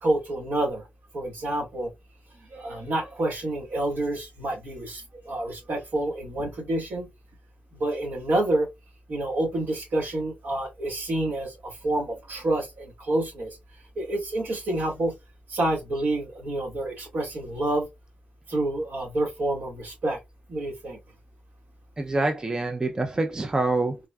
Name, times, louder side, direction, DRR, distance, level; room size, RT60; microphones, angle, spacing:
voice 1, 0.0-0.9 1.1-1.9 2.4-7.1 7.7-8.7 9.1-13.6 13.9-15.1 15.5-17.9 18.5-20.2 20.5-21.0, right 1 dB, 75° right, 1.5 m, -28 dB
voice 2, 22.0-24.0, right 2 dB, 20° right, 0.4 m, -26 dB
3.5 x 2.2 x 2.3 m
wide cardioid pair, 120°, 3 cm